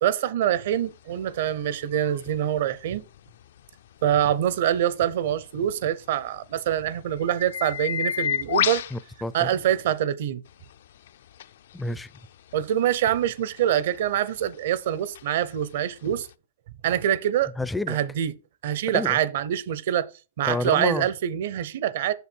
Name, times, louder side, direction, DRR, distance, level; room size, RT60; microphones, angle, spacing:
voice 1, 0.0-3.0 4.0-8.8 9.3-10.4 12.5-16.3 16.8-17.5 17.9-18.3 18.6-20.1 20.4-22.1, right 10 dB, 60° right, 0.7 m, -25 dB
sound 1, 0.7-10.0 10.5-16.3, left 10 dB, 65° left, 0.4 m, -35 dB
voice 2, 8.9-9.5 11.7-12.1 17.6-18.0 18.9-19.2 20.4-21.1, left 2 dB, 5° left, 0.4 m, -29 dB
6.9 x 6.7 x 4.5 m
hypercardioid pair, 155°, 0 cm